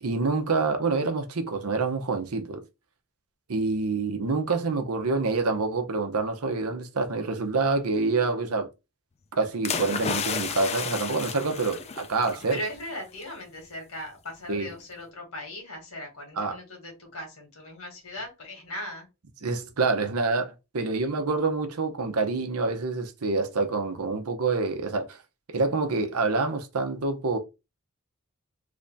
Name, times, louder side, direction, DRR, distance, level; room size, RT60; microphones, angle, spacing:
voice 1, 0.0-2.6 3.5-8.7 9.3-12.6 14.5-14.7 16.4-16.6 19.4-25.2 25.5-27.4, right 3 dB, 85° right, 0.8 m, -27 dB
sound 1, 9.6-12.7 13.0-13.2, left 6 dB, 30° left, 0.4 m, -32 dB
voice 2, 12.5-19.1, left 1 dB, 75° left, 1.7 m, -38 dB
3.3 x 2.7 x 3.3 m
head